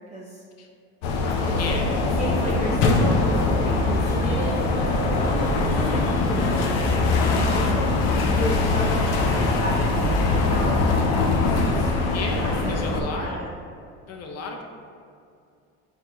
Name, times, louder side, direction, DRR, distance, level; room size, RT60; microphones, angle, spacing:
voice 1, 0.1-0.4 1.4-1.8 2.2-6.8 7.3-10.8 11.3-11.9 12.4-13.5, right 1 dB, 20° right, -4 dB, 0.6 m, -33 dB
sound 1, 1.0-13.0, left 3 dB, 85° left, 0.7 m, -22 dB
voice 2, 1.5-2.5 12.0-13.4 14.1-14.6, left 3 dB, 50° left, 1 dB, 0.7 m, -34 dB
4.3 x 3.8 x 3.0 m, 2.4 s
supercardioid pair, 90°, 33 cm